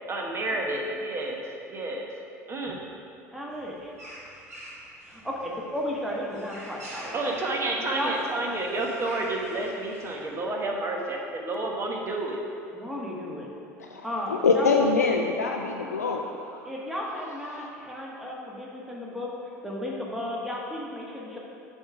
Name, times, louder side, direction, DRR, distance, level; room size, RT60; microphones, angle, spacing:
voice 1, 0.1-1.4 1.7-2.1 2.5-2.8 7.1-12.4, right 2 dB, 30° right, 0 dB, 1.3 m, -30 dB
voice 2, 3.3-3.9 5.1-7.3 7.9-8.1 12.7-13.5 14.0-14.9 16.6-21.4, left 1 dB, 5° right, -4 dB, 1.5 m, -34 dB
sound 1, 3.5-10.3, equal, 85° right, 1.7 m, -45 dB
voice 3, 13.8-16.7 17.5-17.7, left 4 dB, 90° left, 2 dB, 0.4 m, -25 dB
7.7 x 3.6 x 6.0 m, 2.6 s
hypercardioid pair, 70°, 8 cm